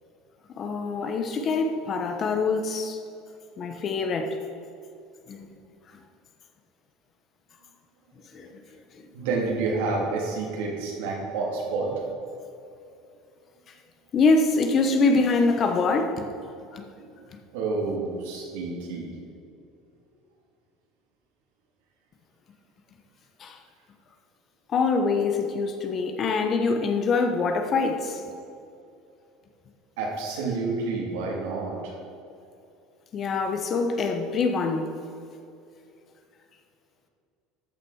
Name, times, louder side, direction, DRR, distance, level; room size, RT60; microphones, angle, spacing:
voice 1, 0.6-3.0 3.6-4.4 5.3-5.4 8.3-8.5 14.1-16.3 16.7-16.8 23.4-23.6 24.7-28.2 33.1-34.9, left 4 dB, 40° left, 1.0 m, -24 dB
voice 2, 9.1-11.9 17.0-17.1 17.5-19.1 30.0-32.0, right 3 dB, 85° right, 2.5 m, -29 dB
13.5 x 6.2 x 4.8 m
supercardioid pair, 120°, 0 cm